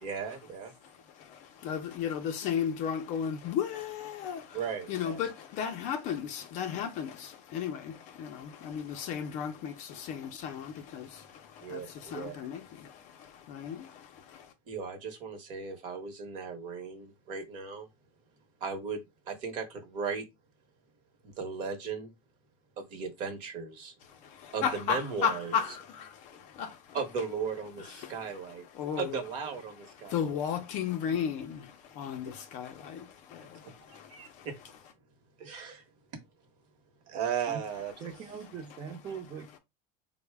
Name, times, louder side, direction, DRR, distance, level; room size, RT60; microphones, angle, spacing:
voice 1, 0.0-0.7 4.5-5.2 11.6-12.5 14.7-17.9 18.6-20.2 21.2-22.1 22.8-23.9 24.5-25.5 26.9-28.6 29.0-30.4 32.2-32.3 33.9-34.5 35.4-35.8 37.1-38.1, right 6 dB, 45° right, 0.9 m, -36 dB
voice 2, 1.2-4.6 4.9-14.5 24.1-27.0 28.0-28.4 28.7-29.2 30.0-34.5, left 8 dB, 40° left, 0.5 m, -35 dB
voice 3, 38.0-39.6, right 6 dB, 25° right, 0.6 m, -41 dB
4.0 x 2.1 x 3.3 m
cardioid pair, 170°, 19 cm